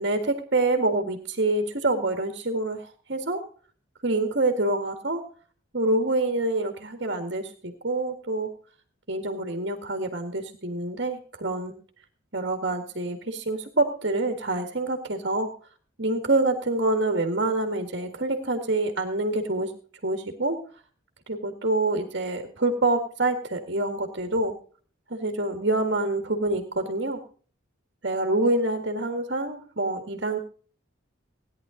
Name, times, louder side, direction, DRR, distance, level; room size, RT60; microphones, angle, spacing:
voice 1, 0.0-3.4 4.0-5.2 5.7-8.5 9.1-11.7 12.3-15.5 16.0-19.7 20.0-20.6 21.3-24.6 25.1-27.2 28.0-30.4, right 2 dB, 55° right, 5 dB, 1.9 m, -26 dB
17.5 x 10.5 x 3.9 m, 0.42 s
head